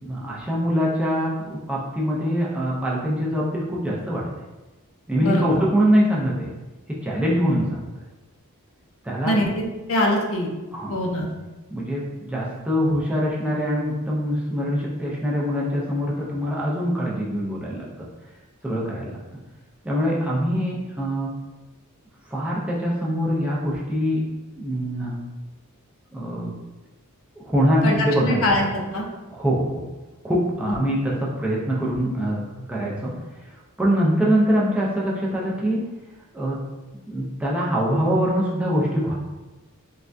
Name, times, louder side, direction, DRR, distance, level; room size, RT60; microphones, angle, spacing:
voice 1, 0.0-4.2 5.1-6.5 6.9-7.9 9.0-9.3 10.7-11.0 11.7-17.8 18.6-19.2 19.8-21.3 22.3-24.2 24.5-25.2 26.1-26.5 27.4-28.4 29.3-29.8 30.2-32.4 32.7-33.1 33.4-35.8 36.3-36.6 37.1-39.1, equal, 5° right, -5 dB, 0.4 m, -23 dB
voice 2, 5.2-5.6 9.2-10.5 10.9-11.3 27.8-29.0 30.7-30.8, left 1 dB, 60° left, 0 dB, 0.5 m, -23 dB
3.3 x 2.2 x 2.5 m, 1.1 s
head